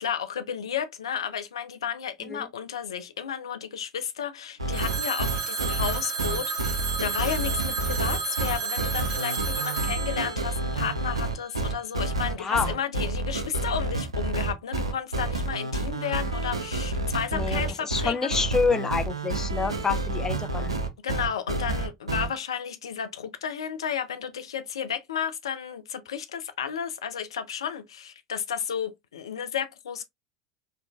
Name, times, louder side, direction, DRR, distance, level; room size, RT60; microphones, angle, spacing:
voice 1, 0.0-18.4 21.0-30.0, left 8 dB, 75° left, 0.5 m, -32 dB
sound 1, 4.6-22.3, right 2 dB, 85° right, 0.5 m, -29 dB
Telephone, 4.7-11.5, right 4 dB, 55° right, 1.1 m, -32 dB
voice 2, 12.4-12.7 17.3-20.7, left 5 dB, 20° left, 0.6 m, -28 dB
4.5 x 2.5 x 2.3 m
figure-of-eight pair, 75°, 3 cm